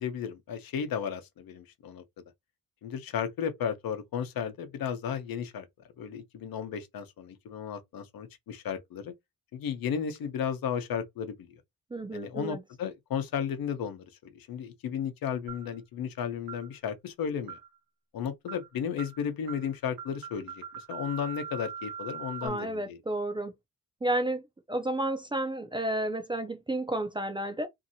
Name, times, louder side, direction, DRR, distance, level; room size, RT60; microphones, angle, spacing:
voice 1, 0.0-2.0 2.8-5.7 6.0-9.1 9.5-11.5 12.1-17.6 18.1-23.0, left 8 dB, 85° left, 0.7 m, -34 dB
voice 2, 11.9-12.6 22.4-23.5 24.0-24.4 24.7-27.7, right 1 dB, 15° right, 0.3 m, -31 dB
sound 1, 15.5-15.8 16.5-16.7 17.5-17.8 18.5-18.7 19.0-19.2 19.5-19.7 20.0-22.5, right 7 dB, 70° right, 0.7 m, -41 dB
2.6 x 2.6 x 2.7 m
wide cardioid pair, 175°, 35 cm